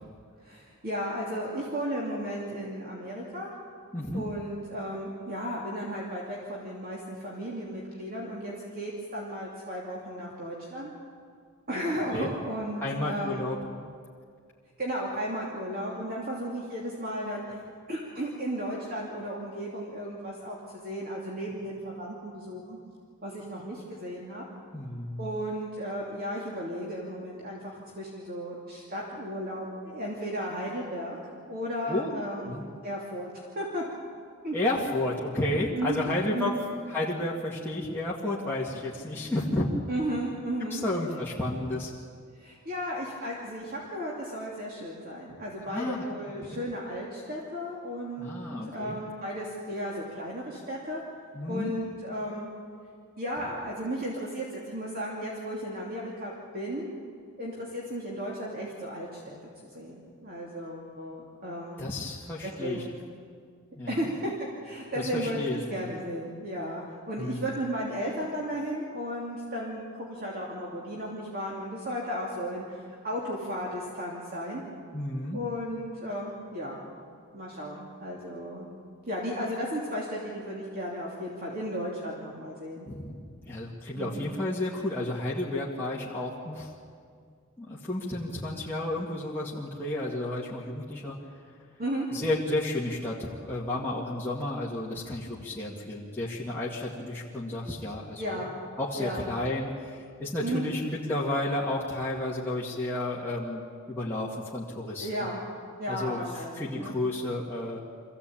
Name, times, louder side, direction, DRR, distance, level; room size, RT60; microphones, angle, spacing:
voice 1, 0.4-3.5 4.1-10.9 11.7-13.5 14.8-17.6 17.9-22.8 23.2-24.4 25.2-31.2 31.5-33.3 33.5-33.8 34.4-34.6 35.7-36.6 39.9-40.8 42.3-48.3 48.6-51.0 51.5-52.5 53.2-56.9 57.4-59.4 59.6-61.9 62.4-62.9 63.9-64.3 64.6-65.4 65.7-74.6 75.3-76.8 77.3-78.7 79.1-82.9 83.9-84.3 91.8-92.1 98.2-98.5 99.0-99.3 100.4-100.7 105.0-105.4 105.8-106.9, equal, 45° right, -3 dB, 2.8 m, -34 dB
voice 2, 3.9-4.2 12.1-12.3 12.8-13.6 24.7-25.3 31.9-32.1 32.4-32.6 34.5-36.6 36.9-39.7 40.7-41.9 45.7-46.1 46.4-46.6 48.2-49.0 51.3-51.7 61.8-62.8 63.8-64.1 65.0-65.9 67.2-67.4 74.9-75.4 82.9-86.7 87.6-91.2 92.1-98.4 98.8-103.6 103.9-105.1 105.9-106.2 106.6-107.8, left 1 dB, 10° left, -6 dB, 2.1 m, -32 dB
24.5 x 15.5 x 8.7 m, 2.1 s
head